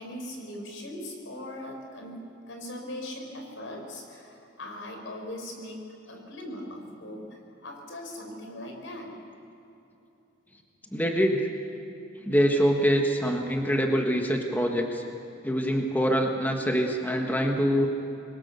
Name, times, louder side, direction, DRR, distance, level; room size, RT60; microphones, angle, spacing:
voice 1, 0.0-5.8 6.1-9.1, left 1 dB, 75° left, 2 dB, 5.2 m, -40 dB
voice 2, 10.9-11.5 12.2-15.0 15.4-17.9, equal, 10° left, 2 dB, 1.5 m, -24 dB
26.5 x 22.0 x 7.0 m, 2.9 s
head